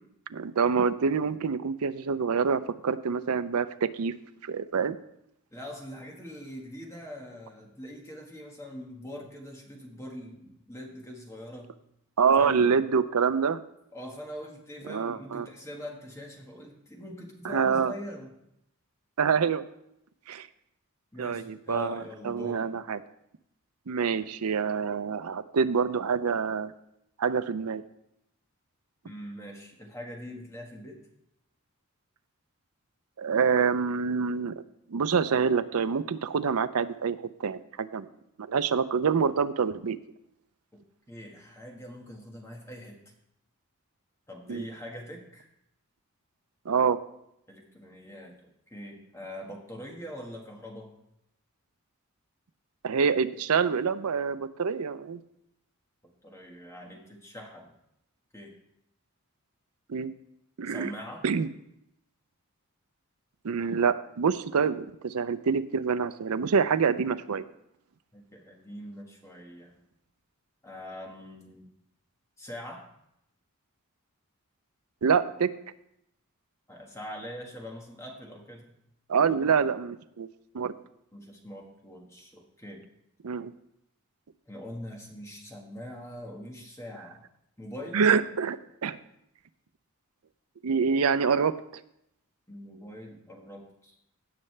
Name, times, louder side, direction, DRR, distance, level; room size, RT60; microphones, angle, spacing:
voice 1, 0.3-4.1 4.4-5.0 12.2-13.6 14.9-15.5 17.4-17.9 19.2-19.6 20.3-20.5 21.2-23.0 23.9-26.7 27.2-27.8 33.2-34.6 34.9-38.1 38.4-40.0 44.5-44.6 46.7-47.0 52.8-55.2 59.9-60.1 60.6-60.9 61.2-61.5 63.4-67.4 75.0-75.5 79.1-80.3 80.5-80.7 83.2-83.5 87.9-88.6 88.8-89.0 90.6-91.6, right 6 dB, 90° right, 12 dB, 0.5 m, -26 dB
voice 2, 5.5-11.7 12.4-12.7 13.9-18.3 21.1-22.6 29.0-31.0 41.1-43.0 44.3-45.5 47.5-50.9 56.2-57.7 58.3-58.5 60.7-61.2 68.1-69.8 70.6-71.7 72.4-72.8 76.7-78.7 81.1-82.8 84.5-87.2 87.6-88.1 92.5-94.0, left 1 dB, 15° left, 0 dB, 1.5 m, -43 dB
17.0 x 6.6 x 3.3 m, 0.78 s
head